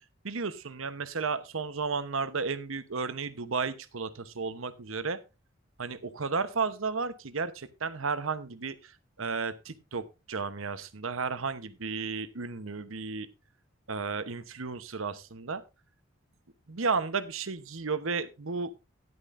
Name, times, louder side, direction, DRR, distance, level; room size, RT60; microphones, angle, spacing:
voice 1, 0.2-5.2 5.8-13.3 13.9-15.6 16.7-18.7, right 4 dB, 85° right, 13 dB, 1.0 m, -33 dB
13.5 x 10.5 x 2.6 m, 0.26 s
head